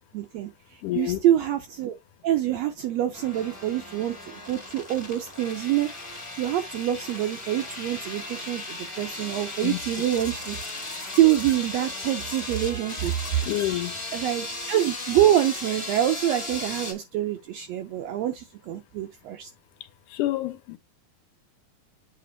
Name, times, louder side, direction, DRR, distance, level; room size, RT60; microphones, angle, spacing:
voice 1, 0.1-0.5 1.0-1.9 2.2-5.9 6.4-10.6 11.1-13.5 14.1-19.5, right 12 dB, 85° right, 1.5 m, -25 dB
voice 2, 0.8-1.2 9.6-9.8 13.4-14.0 20.1-20.8, left 15 dB, 85° left, 2.2 m, -28 dB
sound 1, 3.1-16.9, left 2 dB, 40° left, 0.4 m, -36 dB
8.5 x 3.0 x 3.9 m
omnidirectional pair, 3.6 m